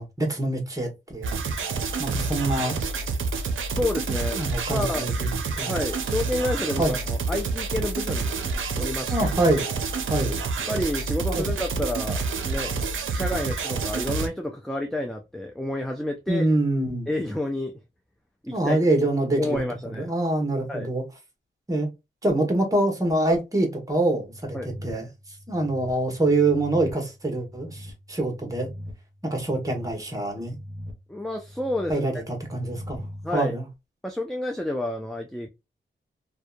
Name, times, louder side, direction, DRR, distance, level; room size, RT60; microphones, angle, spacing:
voice 1, 0.0-1.4 2.0-2.8 4.3-5.7 6.8-6.9 9.1-9.7 10.1-10.4 11.3-11.5 16.3-17.1 18.5-19.6 19.9-21.0 21.7-21.9 22.2-25.1 25.5-28.7 29.2-30.5 31.9-33.0 33.3-33.7, right 2 dB, 15° right, 1.0 m, -25 dB
sound 1, 1.2-14.3, right 4 dB, 80° right, 0.5 m, -28 dB
voice 2, 3.8-4.4 4.7-5.1 5.7-8.4 8.8-9.1 10.7-12.8 13.0-16.5 17.1-17.8 18.4-18.8 19.4-20.1 20.7-20.9 24.5-24.7 31.1-32.1 33.2-33.5 34.0-35.5, left 1 dB, ahead, 0.4 m, -29 dB
sound 2, 24.2-33.3, equal, 40° right, 0.7 m, -42 dB
2.7 x 2.2 x 2.3 m
wide cardioid pair, 80°, 20 cm